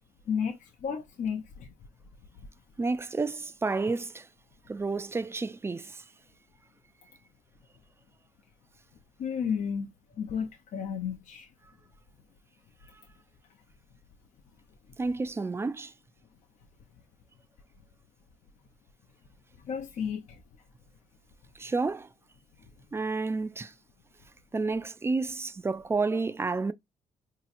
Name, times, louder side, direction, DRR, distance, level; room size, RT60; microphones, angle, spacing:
voice 1, 0.3-1.7 9.2-9.9 10.2-11.5 19.6-20.2, left 7 dB, 75° left, 0.6 m, -32 dB
voice 2, 2.8-4.3 4.7-5.9 15.0-15.9 21.6-22.1 22.9-23.7 24.5-26.7, right 3 dB, 20° right, 0.3 m, -30 dB
4.7 x 2.9 x 2.5 m
cardioid pair, 105°, 13 cm